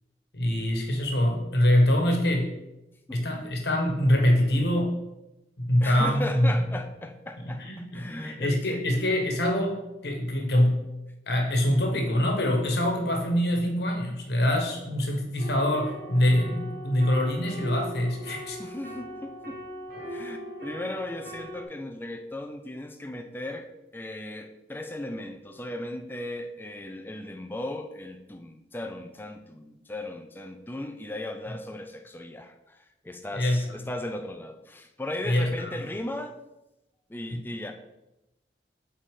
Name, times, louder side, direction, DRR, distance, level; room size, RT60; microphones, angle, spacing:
voice 1, 0.3-2.5 3.1-5.0 5.6-6.6 7.6-9.8 10.0-10.8 11.3-18.6 33.3-33.7 35.2-35.5 37.3-37.4, left 1 dB, 70° left, 2 dB, 1.3 m, -24 dB
voice 2, 5.8-8.8 18.6-19.6 20.1-36.4 37.1-37.7, left 1 dB, 10° left, 5 dB, 0.4 m, -37 dB
sound 1, 15.4-21.6, equal, 60° right, 1.5 m, -40 dB
7.8 x 4.2 x 3.7 m, 0.94 s
head